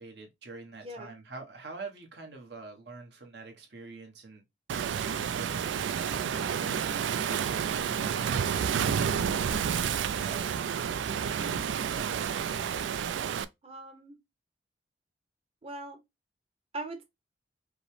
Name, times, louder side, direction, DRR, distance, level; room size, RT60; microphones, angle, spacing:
voice 1, 0.0-4.4 4.9-7.4 7.8-8.7 10.2-12.7, right 3 dB, 65° right, 1.1 m, -46 dB
Waves surf, 4.7-13.4, right 7 dB, 90° right, 0.3 m, -30 dB
voice 2, 13.6-14.2 15.6-16.0 16.7-17.0, right 2 dB, 35° right, 0.9 m, -40 dB
5.2 x 2.1 x 3.1 m
head